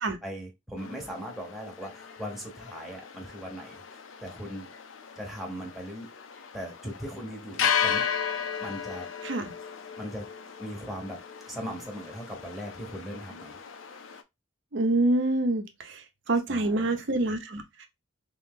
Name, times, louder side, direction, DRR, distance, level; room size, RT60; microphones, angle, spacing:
voice 1, 0.2-3.8 4.2-4.7 5.2-6.1 6.5-8.1 8.6-9.1 10.0-10.3 10.6-13.6 16.5-17.0, equal, ahead, 0.8 m, -39 dB
sound 1, 0.8-14.2, left 7 dB, 75° left, 0.5 m, -35 dB
voice 2, 14.7-16.0 16.3-17.9, right 2 dB, 60° right, 0.7 m, -26 dB
3.2 x 2.7 x 3.6 m
head